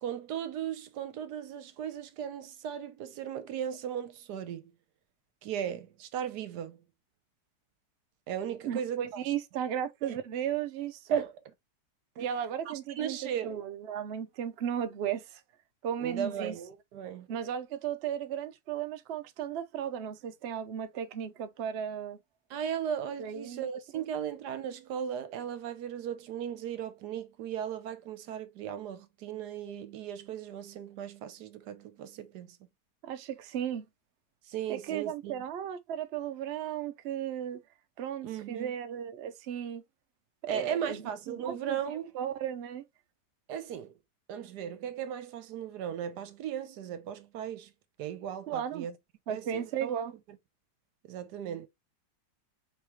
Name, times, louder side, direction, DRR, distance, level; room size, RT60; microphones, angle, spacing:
voice 1, 0.0-4.7 5.4-6.8 8.3-9.2 10.0-10.2 11.1-11.3 12.7-13.6 16.0-17.3 22.5-32.6 34.5-35.4 38.2-38.7 40.5-42.1 43.5-43.9 44.3-47.7 48.0-48.9 49.3-50.0 51.0-51.7, right 9 dB, 70° right, 1.2 m, -37 dB
voice 2, 8.6-11.2 12.2-13.2 13.4-15.4 15.8-16.5 17.3-22.2 23.2-23.7 23.9-24.0 33.0-33.8 34.7-37.6 38.0-39.8 40.5-42.8 48.5-48.9 49.3-50.1, right 9 dB, 90° right, 0.5 m, -35 dB
4.8 x 3.6 x 2.8 m
omnidirectional pair, 1.9 m